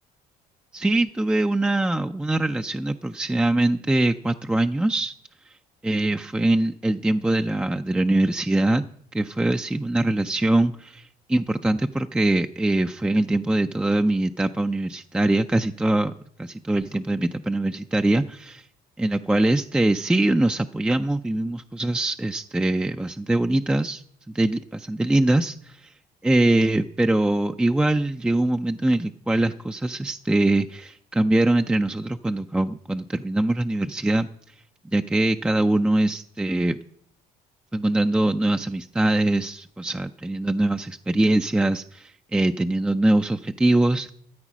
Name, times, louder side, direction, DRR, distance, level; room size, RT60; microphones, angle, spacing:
voice 1, 0.7-5.1 5.8-8.8 9.1-16.1 16.4-18.6 19.0-24.0 24.3-25.8 26.2-34.3 34.9-36.8 37.7-44.1, right 1 dB, 5° right, 7 dB, 0.4 m, -23 dB
14.0 x 8.2 x 6.1 m, 0.66 s
cardioid pair, 110°, 17 cm